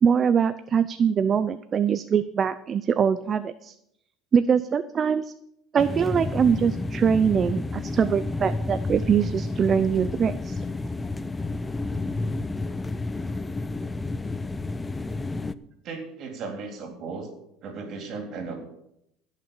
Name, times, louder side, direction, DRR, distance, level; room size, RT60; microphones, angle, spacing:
voice 1, 0.0-3.7 4.3-5.3 5.7-10.6, right 7 dB, 30° right, 13 dB, 0.5 m, -23 dB
sound 1, 5.8-15.5, left 2 dB, 15° left, 0.6 m, -30 dB
voice 2, 15.8-17.3 17.6-18.6, right 4 dB, 50° right, 4 dB, 3.6 m, -35 dB
16.0 x 6.6 x 7.1 m, 0.78 s
cardioid pair, 125°, 0 cm